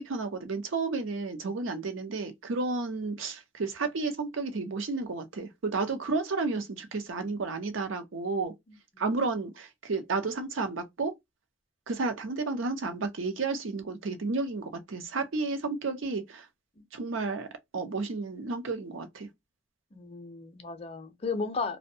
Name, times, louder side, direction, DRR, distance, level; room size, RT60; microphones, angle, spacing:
voice 1, 0.0-8.5 9.0-11.1 11.9-16.5 16.9-17.5 17.7-19.3, right 3 dB, 80° right, 0.6 m, -32 dB
voice 2, 19.9-21.8, left 4 dB, 30° left, 0.5 m, -34 dB
2.5 x 2.1 x 2.6 m
head